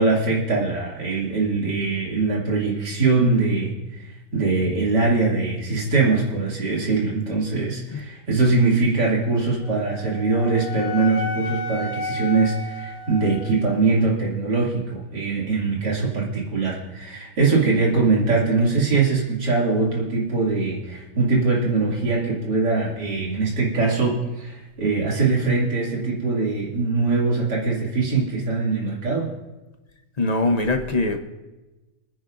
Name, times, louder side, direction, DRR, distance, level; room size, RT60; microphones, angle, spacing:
voice 1, 0.0-4.0 4.3-29.3, right 3 dB, 70° right, -3 dB, 3.2 m, -22 dB
Wind instrument woodwind instrument, 9.6-13.8, left 2 dB, 85° left, 2.6 m, -32 dB
voice 2, 30.2-31.2, left 2 dB, 35° left, 5 dB, 0.6 m, -22 dB
26.5 x 10.0 x 2.6 m, 1.1 s
omnidirectional pair, 1.9 m